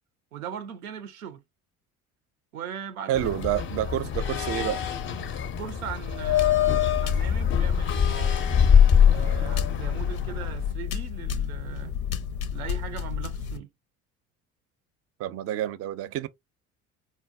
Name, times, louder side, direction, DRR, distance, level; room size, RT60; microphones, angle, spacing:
voice 1, 0.3-1.4 2.5-3.4 5.6-8.6 9.1-12.0 12.5-13.7, right 8 dB, 90° right, 0.5 m, -39 dB
sound 1, 3.1-10.7, left 8 dB, 30° left, 0.5 m, -23 dB
voice 2, 3.1-4.8 15.2-16.3, right 12 dB, 35° right, 0.4 m, -28 dB
sound 2, 6.2-13.6, left 8 dB, 85° left, 0.6 m, -32 dB
4.0 x 2.0 x 2.3 m
hypercardioid pair, 60°, 42 cm